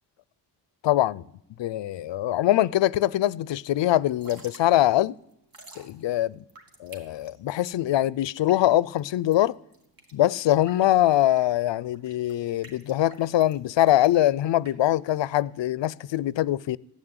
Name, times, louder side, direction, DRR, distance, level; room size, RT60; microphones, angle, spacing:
voice 1, 0.8-1.2 1.6-5.2 5.8-6.4 6.8-9.6 10.1-16.8, left 13 dB, 85° left, 0.5 m, -23 dB
Drip / Trickle dribble, 4.0-15.6, right 2 dB, 55° right, 2.7 m, -52 dB
15.0 x 9.8 x 9.6 m
wide cardioid pair, 110°, 42 cm